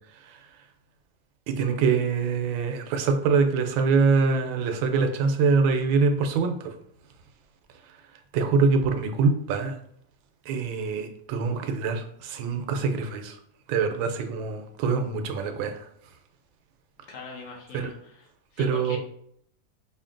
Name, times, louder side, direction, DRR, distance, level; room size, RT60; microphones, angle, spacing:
voice 1, 1.5-6.7 8.3-9.8 10.5-13.4 13.7-15.8 17.7-17.9 18.6-19.0, right 4 dB, 80° right, 6 dB, 1.3 m, -24 dB
voice 2, 17.1-18.2 18.5-19.0, left 4 dB, 90° left, -1 dB, 1.6 m, -41 dB
5.0 x 2.7 x 2.4 m, 0.68 s
omnidirectional pair, 2.1 m